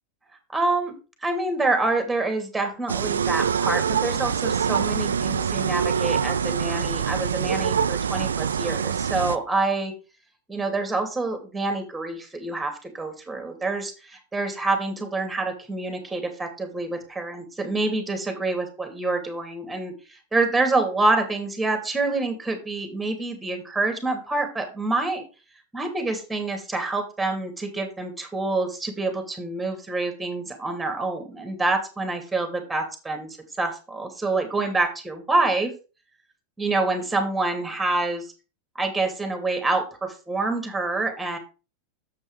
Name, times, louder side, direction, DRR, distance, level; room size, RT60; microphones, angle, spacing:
voice 1, 0.5-0.9 1.2-9.9 10.5-25.2 25.7-35.7 36.6-38.3 38.7-41.4, right 2 dB, 10° right, 5 dB, 2.7 m, -27 dB
sound 1, 2.9-9.4, right 7 dB, 85° right, 0.5 m, -25 dB
7.7 x 5.3 x 4.9 m, 0.32 s
hypercardioid pair, 95°, 0 cm